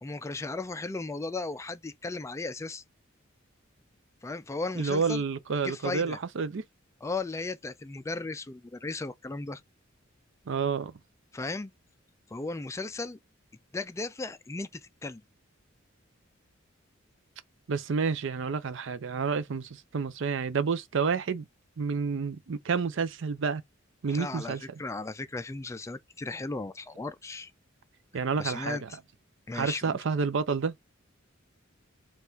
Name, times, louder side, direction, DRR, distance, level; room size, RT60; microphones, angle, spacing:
voice 1, 0.0-2.8 4.2-5.2 5.6-6.2 7.0-9.6 11.3-11.7 12.3-13.2 13.7-15.2 24.1-27.5 28.4-28.8 29.5-30.0, left 3 dB, 15° left, 0.3 m, -36 dB
voice 2, 4.8-6.6 10.5-10.9 17.7-21.5 21.8-23.6 24.0-24.6 28.1-28.9 29.5-30.7, right 5 dB, 65° right, 0.5 m, -29 dB
4.3 x 2.4 x 3.8 m
head